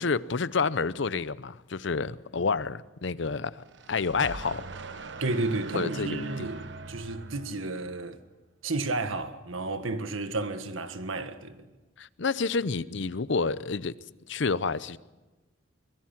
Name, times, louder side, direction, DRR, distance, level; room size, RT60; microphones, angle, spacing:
voice 1, 0.0-4.7 5.7-6.5 12.0-13.9 14.3-15.0, left 4 dB, 65° left, 0.7 m, -29 dB
sound 1, 3.5-8.1, right 3 dB, 60° right, 1.0 m, -41 dB
voice 2, 5.2-8.2 8.6-11.7, right 2 dB, 85° right, 1.6 m, -32 dB
24.0 x 22.0 x 6.0 m
head